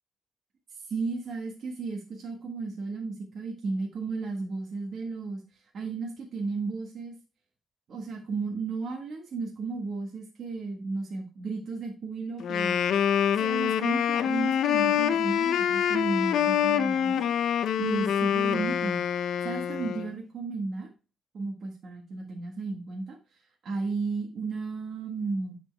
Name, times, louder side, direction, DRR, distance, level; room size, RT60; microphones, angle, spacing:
voice 1, 0.8-7.1 7.9-12.8 13.4-20.9 21.3-25.5, right 4 dB, 55° right, 0 dB, 1.5 m, -34 dB
Wind instrument woodwind instrument, 12.4-20.1, left 9 dB, 70° left, 0.5 m, -26 dB
9.8 x 4.4 x 3.4 m, 0.34 s
cardioid pair, 90°, 0 cm